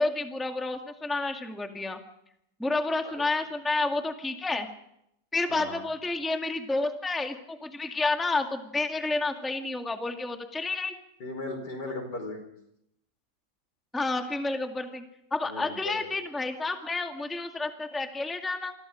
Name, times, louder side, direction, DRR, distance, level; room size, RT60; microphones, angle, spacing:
voice 1, 0.0-2.0 2.6-4.7 5.3-10.9 13.9-15.0 15.3-18.7, left 3 dB, ahead, 4 dB, 2.0 m, -30 dB
voice 2, 5.5-5.8 11.2-12.4 15.4-16.1, left 2 dB, 70° left, 5 dB, 5.5 m, -37 dB
28.0 x 22.5 x 5.2 m, 0.76 s
omnidirectional pair, 1.9 m